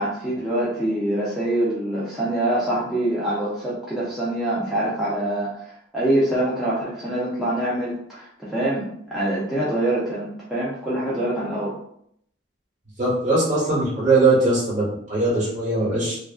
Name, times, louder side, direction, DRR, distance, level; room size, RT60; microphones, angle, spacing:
voice 1, 0.0-11.8, right 1 dB, ahead, -10 dB, 0.5 m, -25 dB
voice 2, 13.0-16.2, right 2 dB, 40° right, -7 dB, 1.1 m, -20 dB
2.7 x 2.4 x 2.3 m, 0.70 s
head